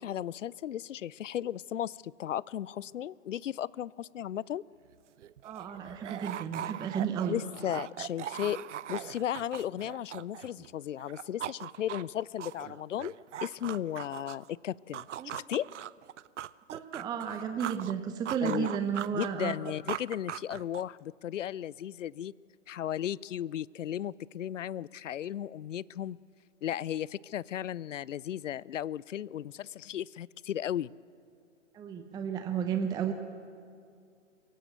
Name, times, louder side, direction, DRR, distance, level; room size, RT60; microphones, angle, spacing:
voice 1, 0.0-4.6 7.3-8.6 8.9-15.1 15.3-15.7 18.4-18.7 19.1-22.3 22.7-26.2 26.6-30.9, left 11 dB, 75° left, 24 dB, 0.5 m, -35 dB
sound 1, 4.9-5.0 5.2-10.7 11.0-14.5 14.9-17.9 18.3-21.0, right 11 dB, 70° right, 0.5 m, -40 dB
voice 2, 5.4-7.4 15.2-15.3 16.7-19.6 31.7-33.1, right 7 dB, 10° right, 7 dB, 0.7 m, -33 dB
23.5 x 15.5 x 8.1 m, 2.3 s
figure-of-eight pair, 120°, 37 cm